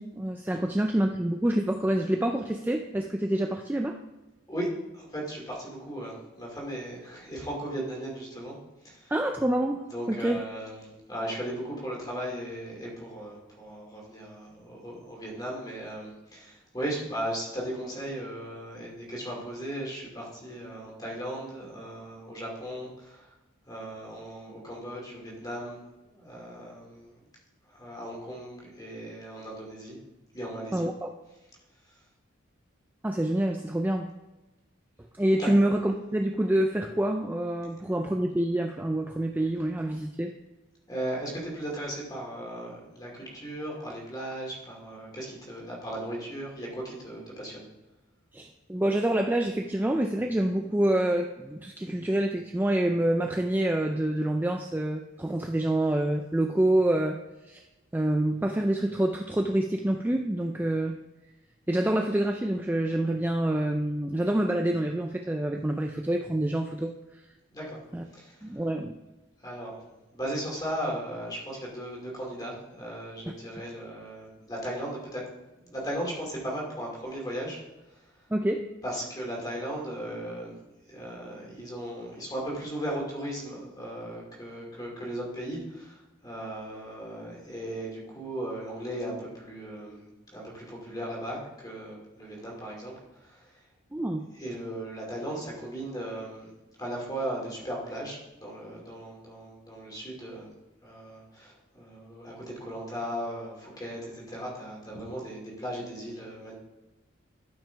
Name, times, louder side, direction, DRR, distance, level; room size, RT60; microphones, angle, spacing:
voice 1, 0.0-4.0 9.1-10.4 30.7-31.1 33.0-34.1 35.1-40.3 48.3-57.6 57.9-61.0 61.7-67.3 67.9-68.0 68.4-69.0 78.3-78.6 93.9-94.3, right 1 dB, 10° right, 3 dB, 0.3 m, -27 dB
voice 2, 4.9-8.6 8.8-9.1 9.9-23.3 23.7-25.8 26.1-27.2 27.7-30.0 30.3-30.9 31.8-32.0 35.4-35.5 40.9-47.7 67.5-67.8 68.1-68.5 69.4-69.8 70.1-75.2 75.6-77.6 77.9-78.1 78.8-80.6 80.9-93.6 94.3-96.5 96.8-100.5 100.8-106.5, right 1 dB, 20° left, -2 dB, 2.4 m, -37 dB
12.0 x 5.9 x 3.4 m, 1.1 s
head